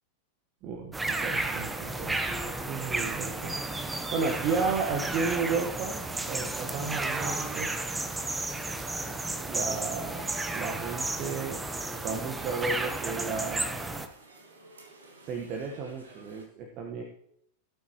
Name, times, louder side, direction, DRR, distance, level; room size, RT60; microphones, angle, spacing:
voice 1, 0.6-3.6 4.1-6.0 6.3-7.7 9.5-11.6 12.0-13.8 15.2-17.0, right 5 dB, 40° right, 3 dB, 1.3 m, -33 dB
sound 1, 0.9-14.1, right 2 dB, 10° right, 1.0 m, -33 dB
sound 2, 7.1-16.5, right 2 dB, 70° right, 2.2 m, -54 dB
17.0 x 8.4 x 3.1 m, 0.71 s
figure-of-eight pair, 90°, 0 cm